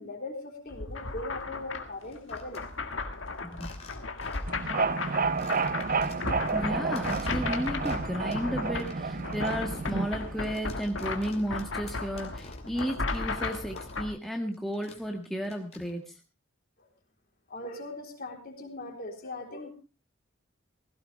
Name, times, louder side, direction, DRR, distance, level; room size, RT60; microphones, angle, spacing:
voice 1, 0.0-2.6 5.6-5.8 16.8-16.9 17.5-19.7, left 2 dB, 50° left, 2 dB, 3.8 m, -40 dB
sound 1, 0.7-14.1, left 3 dB, 70° left, 1.8 m, -35 dB
sound 2, 1.9-2.6 3.5-4.6 4.9-5.0 5.4-6.5 6.9-8.5 8.8-14.3 14.5-16.1, left 4 dB, 30° left, 2.6 m, -51 dB
sound 3, 4.5-10.5, right 4 dB, 45° right, 0.8 m, -31 dB
voice 2, 6.5-16.0, equal, ahead, 2 dB, 1.5 m, -33 dB
16.5 x 16.0 x 3.4 m, 0.31 s
head